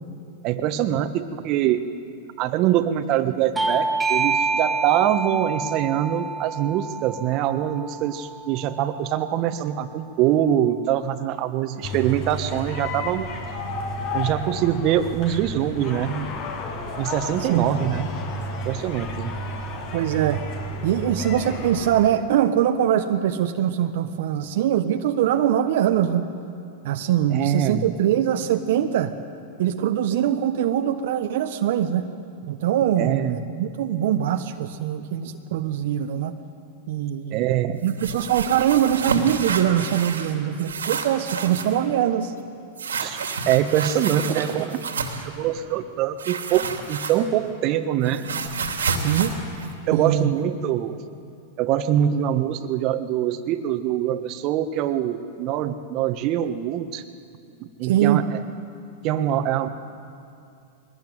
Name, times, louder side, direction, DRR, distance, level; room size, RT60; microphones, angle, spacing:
voice 1, 0.4-1.9 2.4-13.3 14.1-16.3 17.0-18.1 18.6-19.3 27.3-28.0 33.0-33.4 37.3-37.8 43.0-48.3 49.9-51.0 51.6-57.0 57.8-58.4 59.0-59.7, right 11 dB, 45° right, 9 dB, 1.4 m, -24 dB
Bell / Doorbell, 3.6-8.7, right 4 dB, 10° right, 2.1 m, -27 dB
sound 1, 11.8-21.9, left 1 dB, 50° left, 5.8 m, -32 dB
voice 2, 19.9-20.4 20.8-26.3 26.8-29.1 29.6-32.1 32.5-36.4 36.9-37.5 37.8-42.3 49.0-49.3 49.9-50.3 57.8-58.3, right 10 dB, 65° right, 6 dB, 1.2 m, -22 dB
sound 2, 37.8-40.3 40.6-41.8 42.8-45.3 46.2-47.5 47.8-50.4, right 5 dB, 90° right, 2.9 m, -30 dB
22.0 x 19.5 x 9.4 m, 2.5 s
hypercardioid pair, 105°, 0 cm